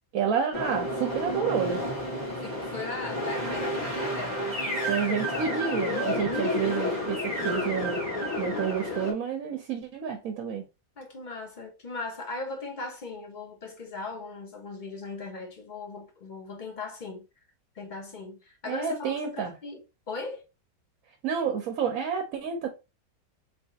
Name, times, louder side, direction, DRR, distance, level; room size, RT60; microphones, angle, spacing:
voice 1, 0.1-1.8 4.9-8.0 8.4-10.6 18.7-19.5 21.2-22.7, right 7 dB, 65° right, 1.0 m, -29 dB
sound 1, 0.5-9.1, left 1 dB, 10° left, 1.3 m, -30 dB
voice 2, 2.4-5.0 11.0-17.3 17.7-20.4, left 3 dB, 40° left, 0.7 m, -38 dB
3.7 x 3.3 x 2.8 m
omnidirectional pair, 1.9 m